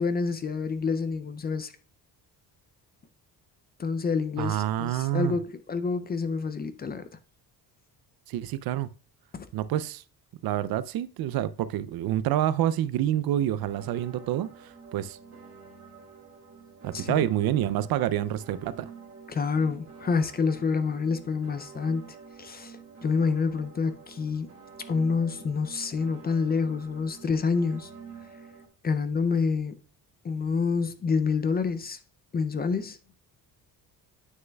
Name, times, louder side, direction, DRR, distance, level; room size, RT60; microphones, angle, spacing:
voice 1, 0.0-1.7 3.8-7.1 9.3-9.5 16.9-17.3 19.3-24.5 24.9-27.9 28.8-29.8 30.2-32.0 32.3-33.0, left 5 dB, 25° left, 0.4 m, -28 dB
voice 2, 4.4-5.4 8.3-8.9 9.5-10.0 10.4-15.2 16.8-18.9, right 12 dB, 65° right, 0.5 m, -28 dB
sound 1, 13.6-28.7, right 6 dB, 35° right, 1.7 m, -48 dB
9.2 x 6.4 x 2.2 m
cardioid pair, 175°, 38 cm